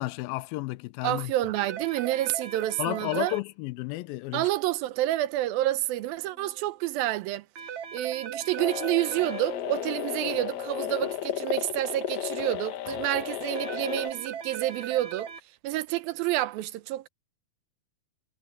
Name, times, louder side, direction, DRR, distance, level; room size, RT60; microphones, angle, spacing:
voice 1, 0.0-1.3 2.8-4.5, left 19 dB, 85° left, 2.4 m, -32 dB
voice 2, 1.0-3.3 4.3-7.5 7.9-15.3 15.6-17.1, right 15 dB, 80° right, 2.5 m, -29 dB
sound 1, 1.6-3.4 7.6-9.4 13.6-15.4, right 8 dB, 60° right, 2.5 m, -38 dB
sound 2, 6.1-7.3 8.2-12.1, right 3 dB, 40° left, 5.5 m, -51 dB
sound 3, 8.6-14.1, left 12 dB, 70° left, 1.8 m, -34 dB
omnidirectional pair, 4.3 m